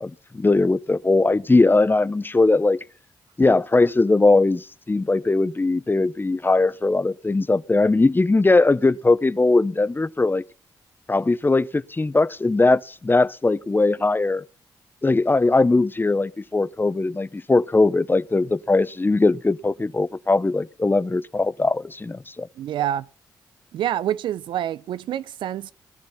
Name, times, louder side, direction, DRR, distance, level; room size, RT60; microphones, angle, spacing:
voice 1, 0.0-2.8 3.4-10.4 11.1-14.4 15.0-22.5, left 3 dB, 25° left, 0.9 m, -20 dB
voice 2, 22.6-23.1 23.7-25.7, right 11 dB, 85° right, 0.6 m, -27 dB
17.5 x 11.5 x 5.6 m
supercardioid pair, 50°, 8 cm